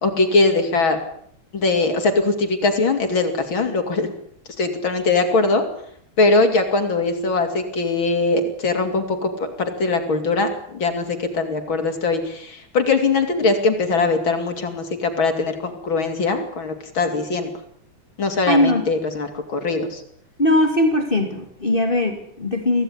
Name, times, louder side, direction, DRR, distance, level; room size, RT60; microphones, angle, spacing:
voice 1, 0.0-1.0 1.5-4.1 4.6-5.6 6.2-17.5 18.2-20.0, left 3 dB, 75° left, 6 dB, 3.7 m, -21 dB
voice 2, 18.5-18.8 20.4-22.8, left 1 dB, 25° left, 4 dB, 3.2 m, -19 dB
25.0 x 17.0 x 10.0 m, 0.66 s
omnidirectional pair, 2.2 m